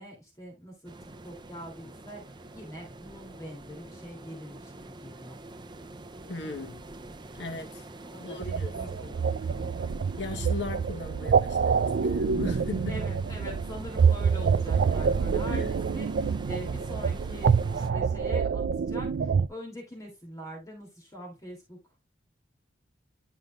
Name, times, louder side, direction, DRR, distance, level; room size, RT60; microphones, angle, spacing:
voice 1, 0.0-5.4 8.0-9.8 12.9-21.8, equal, 20° left, 3.1 m, -43 dB
sound 1, 0.8-17.9, right 2 dB, 25° right, 0.7 m, -44 dB
voice 2, 6.3-6.8 7.3-7.9 8.2-9.0 10.2-13.0 15.0-15.2 15.5-15.7, left 3 dB, 70° left, 1.2 m, -38 dB
sound 2, 8.4-19.5, right 6 dB, 65° right, 0.4 m, -26 dB
11.5 x 5.0 x 2.5 m
head